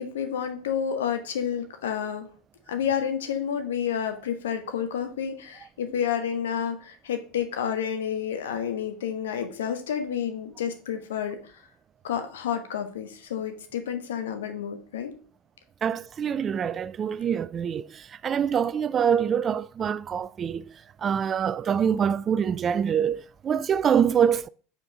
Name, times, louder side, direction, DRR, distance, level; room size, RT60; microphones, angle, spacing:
voice 1, 0.0-2.3 2.7-11.4 12.0-15.1 17.3-17.4, left 8 dB, 75° left, 1.2 m, -30 dB
voice 2, 15.8-20.6 21.0-24.5, right 8 dB, 30° right, 0.3 m, -25 dB
5.4 x 4.4 x 5.9 m
hypercardioid pair, 80°, 0 cm